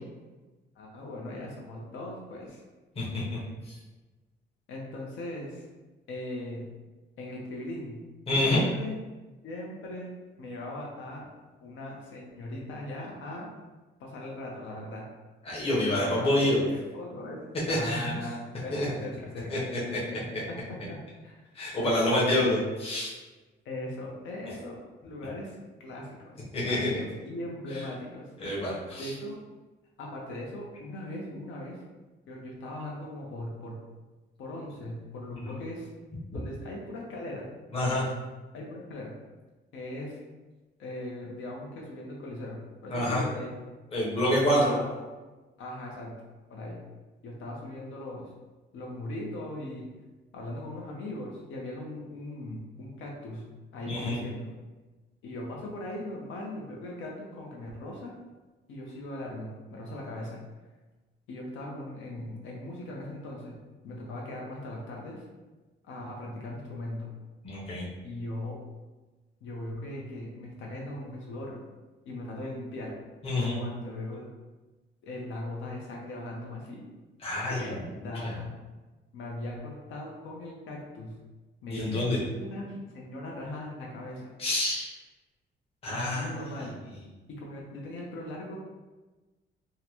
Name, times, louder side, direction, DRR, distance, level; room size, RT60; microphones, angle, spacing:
voice 1, 0.8-2.6 4.7-5.6 6.1-6.6 7.2-8.0 8.3-9.0 9.4-10.1 10.4-11.2 11.6-13.5 14.0-15.0 15.9-17.4 17.7-19.5 19.8-21.3 21.7-22.5 23.6-24.8 25.0-26.3 26.6-28.3 29.0-29.4 30.0-31.8 32.3-33.8 34.4-35.9 36.3-37.5 38.5-39.1 39.7-40.2 40.8-43.5 44.3-45.1 45.6-46.1 46.5-46.8 47.2-48.3 48.7-49.9 50.3-53.4 53.7-54.5 55.2-58.1 58.7-60.4 61.3-63.5 63.8-65.2 65.9-67.1 68.0-68.6 69.4-71.6 72.1-72.9 73.6-74.3 75.0-76.8 77.5-78.5 79.1-81.1 81.6-82.0 82.3-84.3 85.9-86.7 87.3-88.6, left 1 dB, 80° left, -2 dB, 0.7 m, -39 dB
voice 2, 3.0-3.4 3.7-3.8 8.3-8.7 15.4-16.6 17.7-18.1 18.7-18.9 19.5-20.0 20.3-20.4 21.5-23.1 26.5-27.0 27.7-27.8 28.4-29.1 35.4-35.5 37.7-38.0 42.9-43.2 43.9-44.7 53.9-54.2 67.4-67.9 73.2-73.6 77.2-77.7 78.2-78.3 81.7-82.2 84.4-84.9 85.8-86.4, left 1 dB, 30° left, -6 dB, 0.9 m, -27 dB
3.7 x 2.1 x 2.9 m, 1.2 s
cardioid pair, 170°, 20 cm